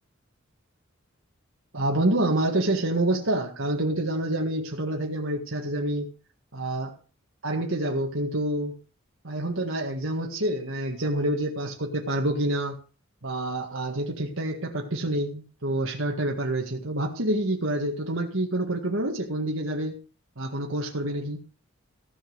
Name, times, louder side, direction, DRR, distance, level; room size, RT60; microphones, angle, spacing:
voice 1, 1.7-6.1 6.5-7.0 7.4-8.7 9.2-12.8 13.2-20.0 20.4-21.4, right 1 dB, 65° right, 0 dB, 1.9 m, -27 dB
16.0 x 5.3 x 8.1 m, 0.36 s
head